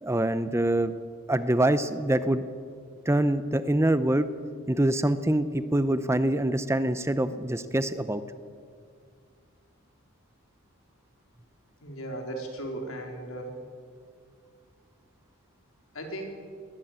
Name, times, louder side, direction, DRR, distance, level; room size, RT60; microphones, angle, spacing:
voice 1, 0.0-0.9 1.3-2.4 3.1-4.3 4.7-8.2, right 1 dB, 15° right, 13 dB, 0.6 m, -25 dB
voice 2, 11.8-13.6 15.9-16.2, right 1 dB, 80° left, 3 dB, 4.1 m, -36 dB
21.0 x 17.5 x 8.9 m, 2.2 s
head